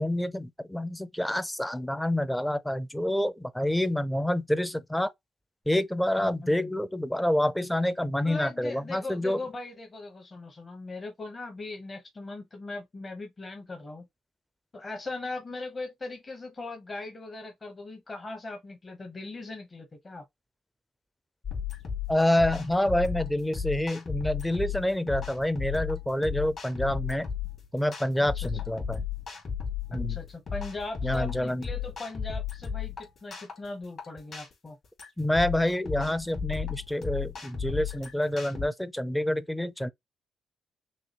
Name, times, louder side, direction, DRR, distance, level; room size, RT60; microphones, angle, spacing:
voice 1, 0.0-5.1 5.7-9.4 22.1-27.3 27.7-29.0 29.9-30.2 31.0-31.7 35.2-39.9, left 1 dB, 5° left, 0.5 m, -27 dB
voice 2, 6.2-6.7 8.2-14.1 14.7-20.2 28.3-28.5 28.8-28.9 29.9-34.8, left 2 dB, 30° left, 1.0 m, -39 dB
sound 1, 21.4-38.7, left 7 dB, 55° left, 2.8 m, -35 dB
6.0 x 2.3 x 3.0 m
cardioid pair, 90°, 0 cm